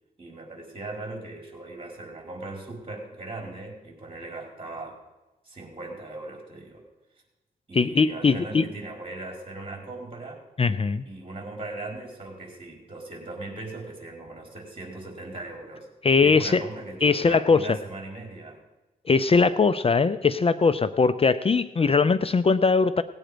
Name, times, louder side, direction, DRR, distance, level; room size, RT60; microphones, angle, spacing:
voice 1, 0.2-5.0 5.4-6.8 7.7-10.4 11.0-15.9 16.2-18.6, right 2 dB, 35° right, 1 dB, 4.5 m, -39 dB
voice 2, 7.7-8.6 10.6-11.0 16.0-16.6 17.0-17.7 19.1-23.0, left 4 dB, 35° left, 13 dB, 0.6 m, -21 dB
18.5 x 8.9 x 5.1 m, 1.1 s
cardioid pair, 70°, 16 cm